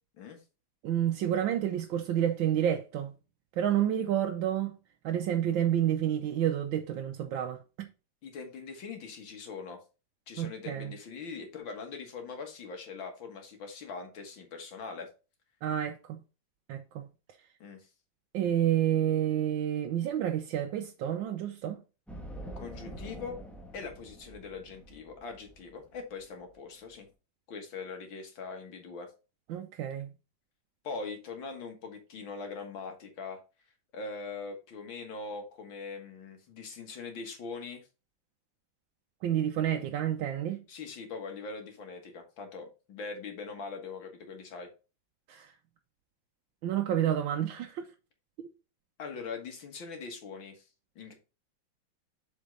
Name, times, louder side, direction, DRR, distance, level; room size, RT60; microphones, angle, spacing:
voice 1, 0.8-3.1 3.5-4.7 5.0-7.9 10.4-10.9 15.6-16.2 16.7-17.1 18.3-21.8 29.5-30.1 39.2-40.6 45.3-45.5 46.6-47.9 48.4-48.5, right 10 dB, 85° right, 1.4 m, -29 dB
voice 2, 8.2-9.8 10.3-15.1 17.6-17.9 22.6-23.4 23.7-27.1 27.5-29.1 30.8-33.4 33.9-37.9 40.7-44.7 49.0-50.6 51.0-51.1, left 4 dB, 85° left, 2.3 m, -42 dB
sound 1, 22.1-27.0, right 1 dB, ahead, 0.5 m, -46 dB
7.1 x 4.6 x 3.9 m
omnidirectional pair, 2.1 m